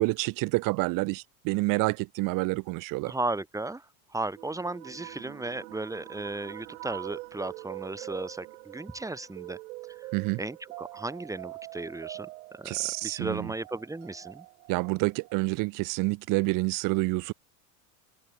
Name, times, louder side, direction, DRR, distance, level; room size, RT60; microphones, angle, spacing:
voice 1, 0.0-3.1 10.1-10.4 12.6-13.5 14.7-17.3, right 25 dB, 50° right, 0.9 m, -28 dB
voice 2, 3.0-3.9 4.1-9.6 10.4-14.5, right 2 dB, 5° right, 3.5 m, -35 dB
sound 1, 4.4-15.3, right 22 dB, 75° right, 1.8 m, -44 dB
supercardioid pair, 115°, 43 cm